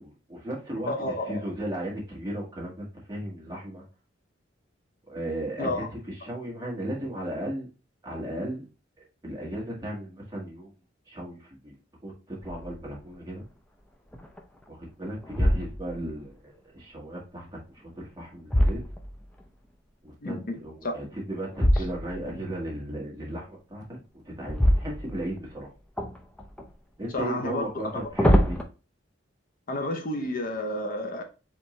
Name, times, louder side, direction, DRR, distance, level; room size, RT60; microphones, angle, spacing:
voice 1, 0.0-0.9 1.3-3.8 5.1-7.7 8.0-8.7 9.0-10.7 11.1-11.7 12.0-13.4 14.7-18.8 20.0-25.7 27.0-28.6, right 1 dB, 20° right, 1.6 m, -36 dB
voice 2, 0.9-1.4 5.6-5.9 20.2-20.9 21.7-21.8 27.1-28.1 29.7-31.2, left 1 dB, 45° left, 0.6 m, -31 dB
sound 1, 12.4-12.9 13.4-13.5 14.1-14.7 15.2-16.1 17.8-19.5 21.5-22.3 24.4-25.5 26.0-26.7 27.8-28.6, equal, 5° left, 0.5 m, -25 dB
4.4 x 3.6 x 3.1 m
head